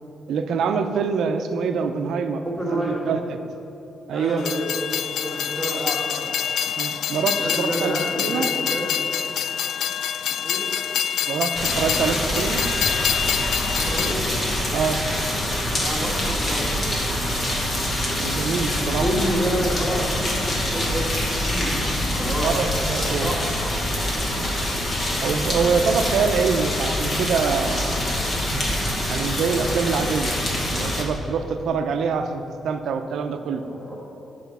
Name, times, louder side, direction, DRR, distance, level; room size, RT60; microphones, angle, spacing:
voice 1, 0.3-3.4 4.1-4.4 6.7-8.5 11.3-12.6 14.7-15.0 18.2-19.1 22.4-23.4 25.2-27.9 29.1-30.3 30.7-33.6, right 5 dB, 70° right, 7 dB, 0.6 m, -25 dB
voice 2, 2.4-3.1 4.1-6.3 7.4-9.0 10.4-10.7 13.7-14.3 15.7-16.7 18.6-22.5 23.2-23.4 24.0-24.3 33.3-34.0, equal, 10° left, -5 dB, 1.9 m, -29 dB
Train, 4.4-14.1, left 9 dB, 90° left, 0.3 m, -26 dB
sound 1, 11.5-31.0, left 1 dB, 30° left, 1.3 m, -25 dB
sound 2, 17.9-29.2, left 1 dB, 45° left, 1.9 m, -34 dB
10.0 x 5.1 x 7.0 m, 2.9 s
wide cardioid pair, 170°, 0 cm